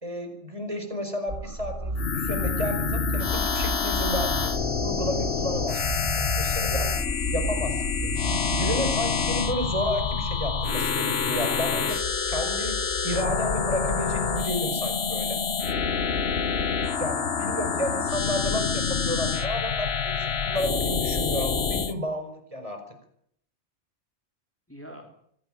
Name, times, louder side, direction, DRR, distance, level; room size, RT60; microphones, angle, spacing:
voice 1, 0.0-4.5 4.8-5.8 6.2-6.9 7.3-8.1 8.6-12.0 12.3-12.8 13.0-15.4 17.0-22.8, equal, 30° right, 6 dB, 5.0 m, -31 dB
sound 1, 1.3-12.2, right 1 dB, 50° right, 3.2 m, -33 dB
sound 2, 2.0-21.9, left 6 dB, 70° left, 1.4 m, -27 dB
voice 2, 5.7-6.2 6.7-7.3 17.4-18.1 24.7-25.2, equal, 10° left, 2 dB, 3.5 m, -47 dB
25.0 x 16.5 x 8.8 m, 0.69 s
omnidirectional pair, 1.1 m